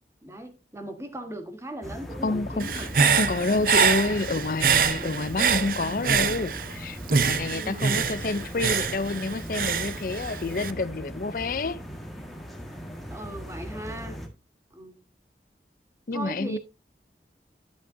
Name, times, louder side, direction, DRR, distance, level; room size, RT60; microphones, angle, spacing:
voice 1, 0.2-3.1 7.5-8.1 13.1-14.2 14.7-15.0 16.1-16.6, right 1 dB, 15° right, 1.4 m, -38 dB
sound 1, 1.8-14.3, equal, ahead, 1.6 m, -39 dB
voice 2, 2.2-11.8 16.1-16.6, left 3 dB, 50° left, 0.5 m, -29 dB
Human voice / Breathing, 2.6-6.8 7.1-10.7, right 6 dB, 50° right, 0.6 m, -25 dB
11.5 x 8.3 x 2.7 m
head